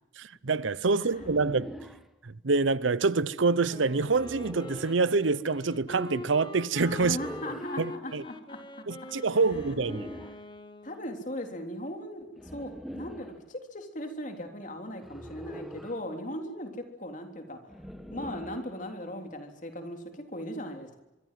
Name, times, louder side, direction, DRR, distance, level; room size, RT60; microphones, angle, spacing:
voice 1, 0.2-1.7 2.2-7.2 7.8-8.2 8.9-10.1, right 4 dB, 80° right, 0.8 m, -26 dB
sound 1, 1.1-2.1 4.0-5.0 6.7-7.7 9.4-10.4 12.4-13.4 15.0-16.0 17.7-18.7, equal, ahead, 1.7 m, -43 dB
Wind instrument woodwind instrument, 3.7-11.3, left 2 dB, 25° left, 1.5 m, -44 dB
voice 2, 7.0-8.9 9.3-9.5 10.8-12.3 12.5-17.6 18.1-21.0, left 1 dB, 40° left, 3.5 m, -38 dB
24.0 x 24.0 x 7.7 m
head